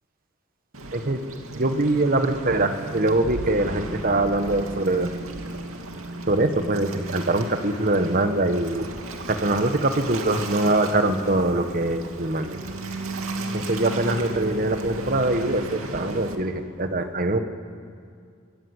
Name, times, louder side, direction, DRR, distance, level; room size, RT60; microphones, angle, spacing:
Waves surf, 0.7-16.3, right 2 dB, 85° right, 2.6 m, -35 dB
voice 1, 1.5-5.1 6.3-8.9 9.3-12.6 13.5-17.4, right 2 dB, 45° right, 8 dB, 1.4 m, -23 dB
24.5 x 24.5 x 8.1 m, 2.2 s
head